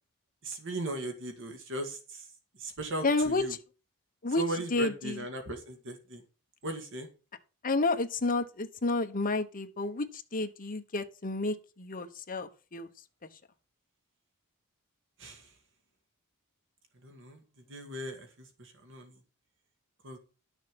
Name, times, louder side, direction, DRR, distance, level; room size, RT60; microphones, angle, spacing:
voice 1, 0.4-2.3 2.6-3.6 4.4-6.2 6.6-7.1 15.2-15.5 17.0-17.4 17.7-19.2 20.0-20.2, right 1 dB, 60° right, 2.0 m, -38 dB
voice 2, 3.0-3.5 4.2-4.4 4.7-5.1 7.6-10.1 10.3-12.9, left 3 dB, 40° left, 1.1 m, -30 dB
12.0 x 6.5 x 5.3 m
head